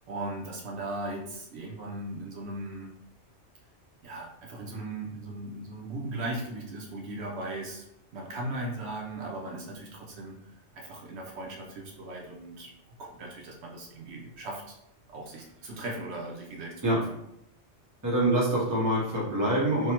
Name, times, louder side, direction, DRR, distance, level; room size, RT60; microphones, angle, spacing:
voice 1, 0.1-2.9 4.0-7.8 8.1-10.4 10.7-14.8 15.1-17.2, right 2 dB, 70° right, -1 dB, 0.9 m, -38 dB
voice 2, 18.0-19.9, right 1 dB, 20° right, -4 dB, 0.6 m, -25 dB
3.3 x 2.0 x 2.8 m, 0.81 s
omnidirectional pair, 1.2 m